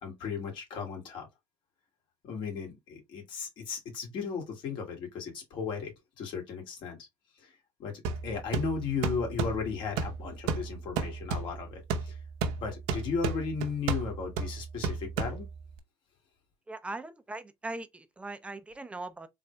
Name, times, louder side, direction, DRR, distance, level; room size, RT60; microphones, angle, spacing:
voice 1, 0.0-1.3 2.2-7.1 7.4-12.2 12.6-15.5, left 5 dB, 60° left, 2.2 m, -36 dB
sound 1, 8.0-15.8, right 5 dB, 85° right, 0.8 m, -34 dB
voice 2, 16.7-19.3, right 2 dB, 15° right, 0.6 m, -40 dB
3.8 x 3.3 x 3.2 m
cardioid pair, 115°, 9 cm